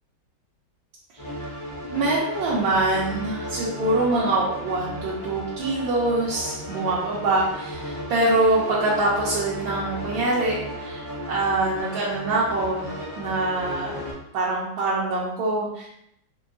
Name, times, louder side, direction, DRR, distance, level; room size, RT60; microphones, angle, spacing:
sound 1, 1.2-14.1, equal, 35° left, 0.4 m, -35 dB
voice 1, 1.8-14.0 14.3-15.9, right 2 dB, 75° right, -7 dB, 1.4 m, -24 dB
4.5 x 2.3 x 2.5 m, 0.77 s
omnidirectional pair, 2.2 m